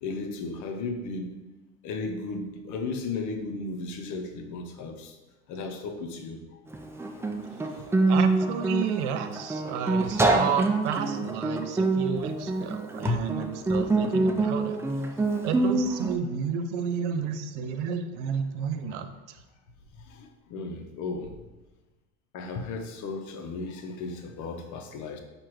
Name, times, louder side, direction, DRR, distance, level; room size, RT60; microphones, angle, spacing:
voice 1, 0.0-1.4 1.8-5.2 5.5-6.4 7.2-7.3 7.7-7.9 12.1-12.3 13.1-13.2 20.0-21.4 22.3-25.2, left 3 dB, 60° left, 5 dB, 0.8 m, -35 dB
Guitar, 6.7-16.2, right 2 dB, 10° right, 0.4 m, -26 dB
voice 2, 8.1-14.8 15.4-19.1, right 7 dB, 85° right, 8 dB, 0.5 m, -31 dB
4.7 x 2.5 x 4.5 m, 1.1 s
hypercardioid pair, 85°, 34 cm